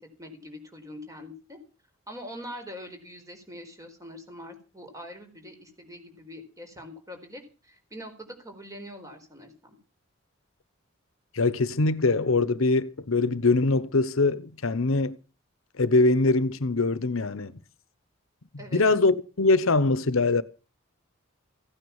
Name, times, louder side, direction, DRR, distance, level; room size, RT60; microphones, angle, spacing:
voice 1, 0.2-1.6 2.1-9.8 18.6-18.8, equal, 15° right, 4.5 m, -43 dB
voice 2, 11.3-15.2 15.8-17.5 18.7-20.4, left 3 dB, 75° left, 1.0 m, -23 dB
16.0 x 9.6 x 7.2 m
head